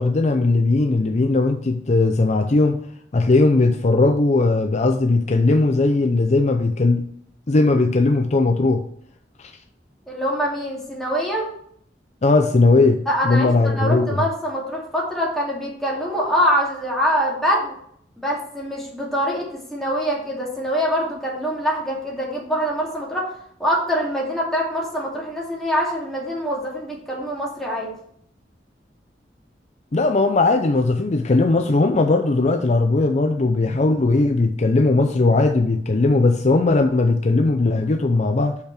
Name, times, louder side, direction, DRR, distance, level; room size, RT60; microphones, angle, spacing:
voice 1, 0.0-2.8 3.1-7.1 7.5-8.8 9.4-9.5 12.2-14.2 29.9-38.6, left 3 dB, 40° left, 6 dB, 0.5 m, -18 dB
voice 2, 10.1-11.5 13.1-17.7 18.2-23.3 23.6-27.9, equal, ahead, -4 dB, 2.5 m, -24 dB
6.7 x 5.8 x 5.9 m, 0.67 s
head